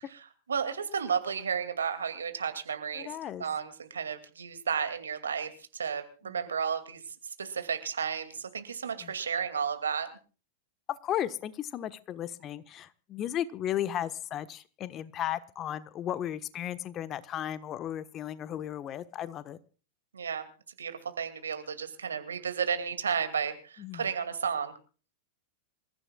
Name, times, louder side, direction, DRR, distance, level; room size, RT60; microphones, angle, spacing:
voice 1, 0.5-3.1 3.4-10.1 20.1-20.4 20.8-24.7, right 6 dB, 80° right, 9 dB, 2.4 m, -33 dB
voice 2, 2.9-3.4 6.3-6.4 9.0-9.1 10.9-19.6 23.8-24.1, left 11 dB, 35° left, 14 dB, 1.2 m, -35 dB
26.5 x 15.0 x 2.4 m, 0.37 s
hypercardioid pair, 95°, 0 cm